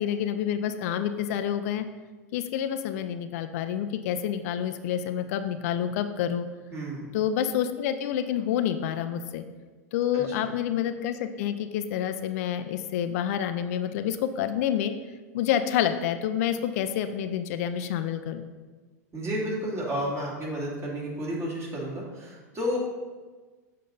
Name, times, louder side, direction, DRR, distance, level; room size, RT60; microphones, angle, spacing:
voice 1, 0.0-1.8 2.3-6.5 7.1-9.4 9.9-14.9 15.3-18.5, left 9 dB, 65° left, 9 dB, 0.5 m, -28 dB
voice 2, 6.7-7.2 10.1-10.5 19.1-22.8, equal, 30° right, -3 dB, 2.3 m, -32 dB
6.9 x 5.4 x 3.9 m, 1.3 s
hypercardioid pair, 100°, 9 cm